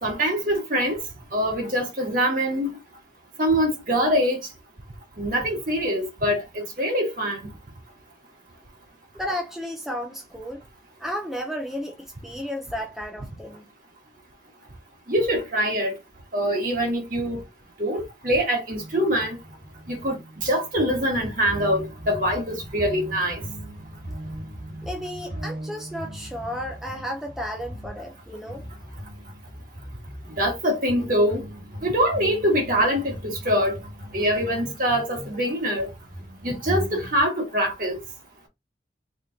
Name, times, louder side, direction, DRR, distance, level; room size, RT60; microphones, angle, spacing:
voice 1, 0.0-1.0 1.3-2.7 3.4-4.4 5.2-7.5 15.1-15.9 16.3-17.4 17.8-19.4 19.9-23.4 30.4-31.4 31.8-33.8 34.1-35.9 36.4-38.0, equal, 45° right, 1.7 m, -24 dB
voice 2, 9.1-10.6 11.0-13.6 24.8-28.6, equal, ahead, 0.5 m, -33 dB
sound 1, 18.8-37.2, equal, 90° right, 1.8 m, -38 dB
4.1 x 3.6 x 2.7 m
head